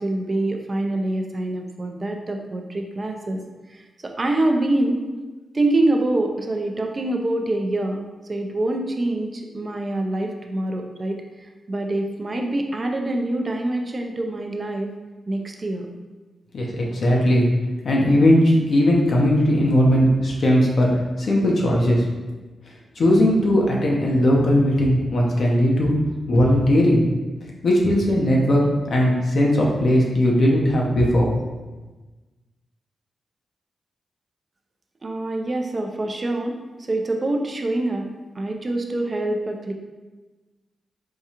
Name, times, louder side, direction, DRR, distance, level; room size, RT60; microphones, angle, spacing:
voice 1, 0.0-3.4 3.7-5.1 5.5-14.9 15.3-15.9 35.0-38.1 38.4-39.7, right 2 dB, 35° right, 3 dB, 0.4 m, -25 dB
voice 2, 16.5-17.5 17.8-20.9 21.2-22.0 23.0-25.9 26.3-27.0 27.6-31.3, equal, 65° left, -2 dB, 0.8 m, -18 dB
4.6 x 2.3 x 2.8 m, 1.2 s
cardioid pair, 85°, 0 cm